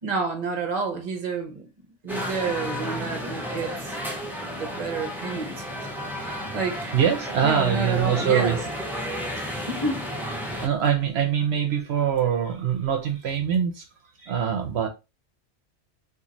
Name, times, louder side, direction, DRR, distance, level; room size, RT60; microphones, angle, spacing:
voice 1, 0.0-1.7 2.0-4.0 4.6-5.9 6.2-6.9 7.4-8.6 9.7-10.1, right 4 dB, 40° right, 0.8 m, -29 dB
sound 1, 2.1-10.7, equal, ahead, 0.8 m, -32 dB
voice 2, 6.9-8.6 9.3-9.5 10.6-13.9 14.2-14.9, right 8 dB, 70° right, 0.8 m, -23 dB
3.0 x 2.5 x 3.8 m
omnidirectional pair, 1.2 m